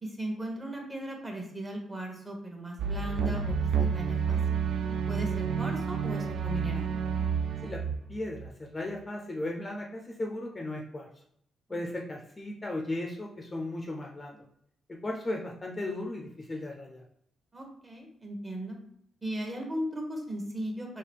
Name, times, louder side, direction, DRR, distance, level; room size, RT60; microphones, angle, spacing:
voice 1, 0.0-4.4 5.1-6.9 11.7-11.8 17.5-18.8 19.2-21.0, equal, 20° right, 1 dB, 1.1 m, -37 dB
sound 1, 2.8-8.5, right 6 dB, 70° right, 0.4 m, -30 dB
voice 2, 8.1-11.1 11.7-14.4 14.9-17.0, left 1 dB, 20° left, 1 dB, 0.6 m, -36 dB
4.7 x 3.0 x 3.4 m, 0.69 s
cardioid pair, 110°, 0 cm